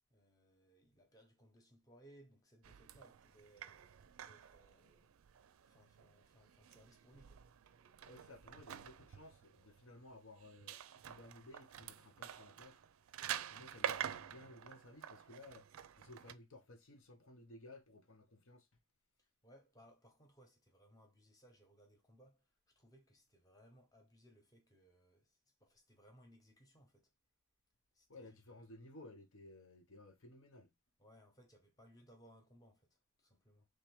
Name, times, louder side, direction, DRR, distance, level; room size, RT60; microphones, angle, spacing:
voice 1, 0.1-5.1 5.6-7.5 19.2-27.1 27.9-28.7 31.0-33.7, equal, 15° left, 0.9 m, -65 dB
sound 1, 2.6-16.3, right 9 dB, 85° right, 0.4 m, -48 dB
voice 2, 8.0-12.8 13.5-15.6 16.0-18.7 28.1-30.7, left 2 dB, 75° left, 0.9 m, -57 dB
3.5 x 3.2 x 4.5 m
head